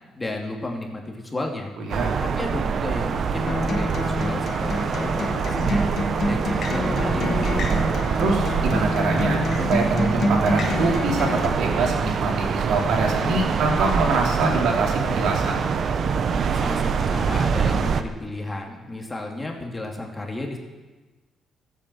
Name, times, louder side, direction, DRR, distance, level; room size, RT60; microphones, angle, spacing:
voice 1, 0.2-1.7 2.2-5.9 6.3-7.8 16.5-20.6, left 2 dB, 20° left, 1 dB, 2.5 m, -33 dB
sound 1, 1.9-18.0, right 6 dB, 55° right, 1.0 m, -25 dB
Acoustic guitar, 3.5-11.5, left 1 dB, 55° left, 2.2 m, -27 dB
voice 2, 8.2-9.4 9.7-15.6, right 3 dB, 80° right, 0 dB, 3.4 m, -24 dB
13.5 x 8.4 x 7.9 m, 1.3 s
cardioid pair, 90°, 0 cm